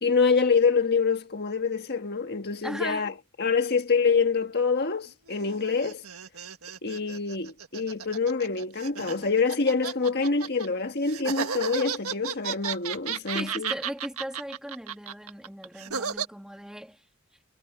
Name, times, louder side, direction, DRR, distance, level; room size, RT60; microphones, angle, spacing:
voice 1, 0.0-3.1 3.4-6.0 6.8-13.7, left 5 dB, 50° left, 1.6 m, -26 dB
voice 2, 2.6-3.1 13.3-17.0, equal, 5° right, 2.3 m, -38 dB
sound 1, 5.3-10.7 11.1-16.3, right 7 dB, 90° right, 1.6 m, -34 dB
head